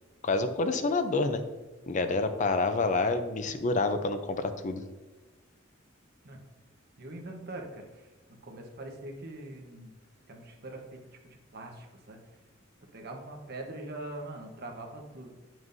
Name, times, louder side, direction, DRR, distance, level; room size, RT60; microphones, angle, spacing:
voice 1, 0.2-1.4 1.9-4.8, left 3 dB, 40° left, 9 dB, 0.5 m, -28 dB
voice 2, 7.0-9.9 10.3-12.2 12.9-15.3, right 2 dB, 55° right, 2 dB, 1.1 m, -43 dB
9.1 x 6.1 x 2.6 m, 1.2 s
head